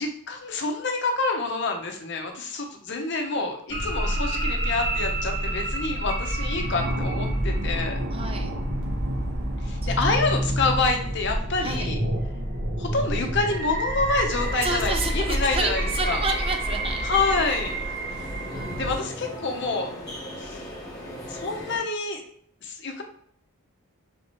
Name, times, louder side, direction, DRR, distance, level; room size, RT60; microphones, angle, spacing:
voice 1, 0.0-8.0 9.6-12.0 12.8-16.2 17.0-17.8 18.8-19.9 20.4-20.6 21.3-22.2 22.6-23.0, left 3 dB, 55° left, 3 dB, 0.7 m, -27 dB
sound 1, 3.7-18.9, right 1 dB, 50° right, 0.9 m, -28 dB
voice 2, 8.1-8.5 9.8-10.1 11.6-11.9 14.6-17.1, right 3 dB, 25° right, 5 dB, 0.4 m, -30 dB
sound 2, 14.3-21.8, left 1 dB, 20° left, 1.0 m, -38 dB
3.5 x 2.9 x 4.3 m, 0.62 s
head